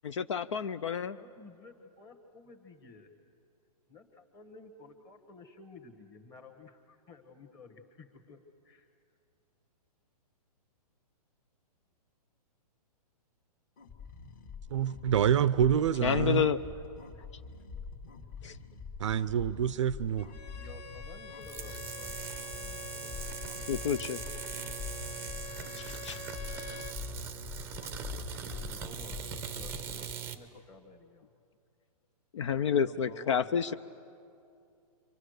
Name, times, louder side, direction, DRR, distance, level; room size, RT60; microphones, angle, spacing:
voice 1, 0.0-1.2 16.0-16.6 18.4-18.6 23.7-24.2 25.8-26.2 32.3-33.7, left 7 dB, 50° left, 13 dB, 0.6 m, -29 dB
voice 2, 1.2-3.1 3.9-8.4 8.6-8.9 20.5-23.7 28.0-31.3 32.7-33.7, left 4 dB, 15° left, 4 dB, 1.4 m, -53 dB
sound 1, 13.8-30.2, left 5 dB, 30° left, 1.7 m, -44 dB
voice 3, 14.7-16.5 19.0-20.3, right 9 dB, 50° right, 16 dB, 0.6 m, -27 dB
Bowed string instrument, 20.2-27.0, left 4 dB, 80° left, 1.7 m, -46 dB
sound 2, 21.4-30.4, right 9 dB, 10° right, 0.7 m, -41 dB
29.5 x 24.5 x 6.5 m, 2.5 s
hypercardioid pair, 165°, 20 cm